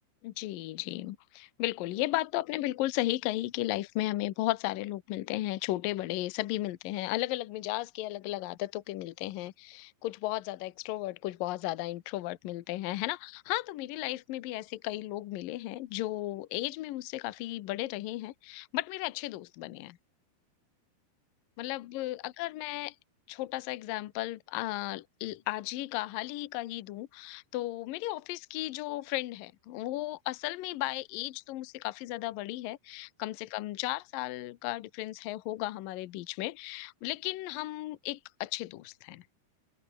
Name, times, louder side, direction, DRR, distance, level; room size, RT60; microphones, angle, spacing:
voice 1, 0.2-20.0 21.6-23.0 23.3-39.2, left 17 dB, 70° left, 2.3 m, -35 dB
open air
omnidirectional pair, 5.0 m